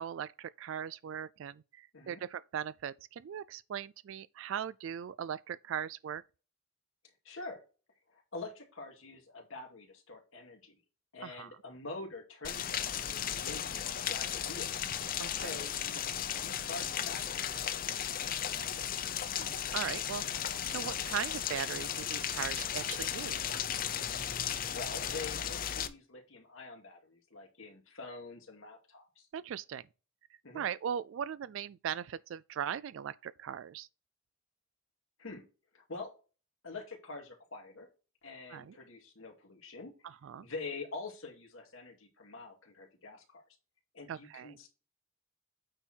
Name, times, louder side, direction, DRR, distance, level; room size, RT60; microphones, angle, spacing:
voice 1, 0.0-6.2 11.2-11.6 15.2-15.6 19.4-23.6 29.3-29.8 30.5-33.9 38.5-38.8 40.0-40.5 44.1-44.6, right 8 dB, 70° right, 0.3 m, -39 dB
voice 2, 7.2-7.6 8.1-10.8 11.1-14.7 15.3-18.9 20.7-20.9 24.7-29.3 30.4-30.6 35.2-35.4 35.7-36.1 36.6-37.9 38.2-39.9 40.4-43.4 43.9-44.7, left 3 dB, 85° left, 2.3 m, -46 dB
Rain, 12.4-25.9, left 9 dB, 45° left, 0.6 m, -35 dB
8.8 x 4.5 x 4.4 m
head